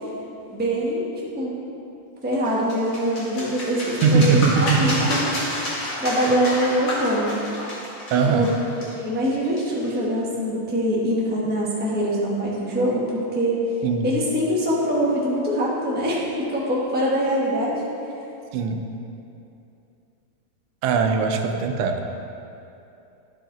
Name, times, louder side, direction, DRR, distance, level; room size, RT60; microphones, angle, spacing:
voice 1, 0.5-1.1 1.3-1.5 2.2-5.2 6.0-7.5 8.2-13.6 14.0-17.7, equal, 5° right, -6 dB, 0.8 m, -24 dB
sound 1, 2.4-10.0, left 1 dB, 40° left, 1.8 m, -30 dB
voice 2, 4.0-5.1 8.1-8.5 13.8-14.1 18.5-18.9 20.8-22.0, right 5 dB, 85° right, 5 dB, 1.5 m, -20 dB
11.0 x 4.9 x 3.9 m, 2.7 s
omnidirectional pair, 2.4 m